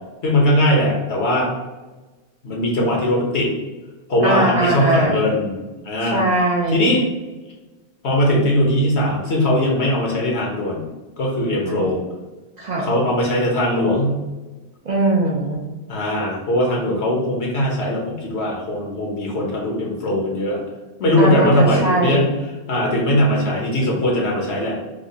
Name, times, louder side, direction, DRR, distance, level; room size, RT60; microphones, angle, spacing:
voice 1, 0.2-1.5 2.4-3.5 4.1-5.6 5.8-6.2 6.7-7.0 8.0-10.8 11.2-12.0 12.8-14.2 15.9-20.6 21.0-22.3 22.7-24.8, left 1 dB, 80° left, -2 dB, 1.2 m, -20 dB
voice 2, 4.2-5.2 6.0-6.8 11.6-11.9 12.6-12.9 14.8-15.6 21.2-22.3, right 2 dB, 50° right, -1 dB, 0.6 m, -20 dB
4.9 x 2.1 x 2.7 m, 1.2 s
omnidirectional pair, 1.1 m